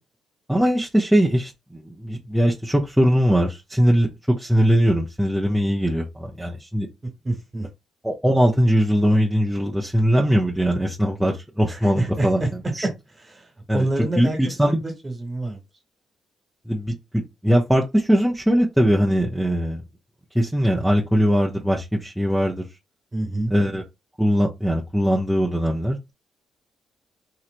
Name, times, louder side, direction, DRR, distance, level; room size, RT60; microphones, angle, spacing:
voice 1, 0.5-6.9 8.0-12.4 12.7-12.9 13.7-13.9 14.2-14.8 16.7-19.8 20.3-22.7 23.5-23.8 24.2-26.1, equal, 5° right, 0.6 m, -21 dB
voice 2, 7.2-7.7 11.7-12.5 13.2-13.5 13.7-15.6 23.1-23.5, right 2 dB, 25° right, 1.5 m, -27 dB
3.1 x 2.9 x 2.5 m
cardioid pair, 90°, 0 cm